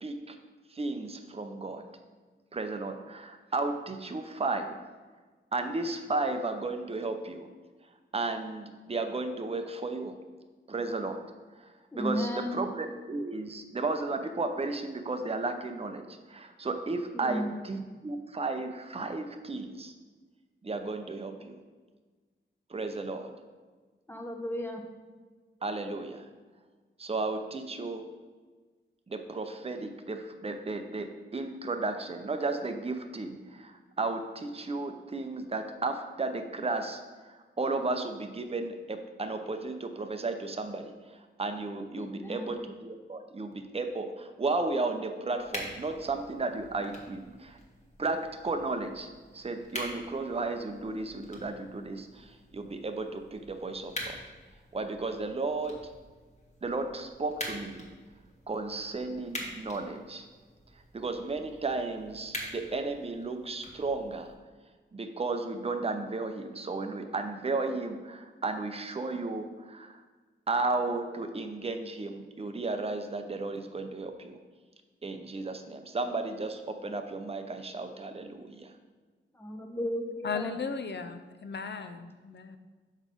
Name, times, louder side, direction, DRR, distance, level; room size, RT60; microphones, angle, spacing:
voice 1, 0.0-0.4 0.7-1.8 2.5-4.8 5.5-7.5 8.1-10.2 10.7-11.2 11.6-19.9 20.6-21.6 22.7-23.3 25.6-26.3 27.0-28.1 29.1-37.0 37.6-40.9 41.4-47.6 48.0-49.1 49.3-54.2 54.7-55.8 56.6-57.9 58.5-60.3 60.9-64.3 64.9-70.0 70.5-74.4 75.0-78.7, right 3 dB, 30° right, 6 dB, 0.6 m, -34 dB
voice 2, 11.9-12.6 17.1-17.5 24.1-24.8 42.0-42.5 79.4-80.6, equal, 10° left, 4 dB, 0.9 m, -34 dB
sound 1, 45.4-64.4, left 1 dB, 35° left, 1.5 m, -45 dB
voice 3, 80.2-82.6, left 5 dB, 60° left, 8 dB, 0.5 m, -36 dB
6.2 x 4.1 x 5.2 m, 1.4 s
wide cardioid pair, 75°, 21 cm